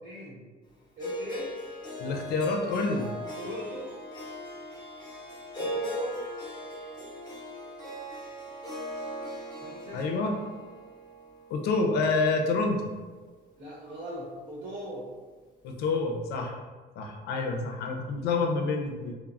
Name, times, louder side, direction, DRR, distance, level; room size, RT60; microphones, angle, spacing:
voice 1, 0.0-0.4 1.0-1.5 3.4-3.9 5.6-6.2 9.6-10.0 13.6-15.1, right 1 dB, 55° right, -8 dB, 1.1 m, -39 dB
Harp, 1.0-13.1, equal, 25° left, 0.7 m, -39 dB
voice 2, 2.0-3.1 9.9-10.4 11.5-12.9 15.6-16.6 17.0-19.1, left 3 dB, 75° left, 3 dB, 0.5 m, -28 dB
3.1 x 2.0 x 2.3 m, 1.3 s
cardioid pair, 110°, 17 cm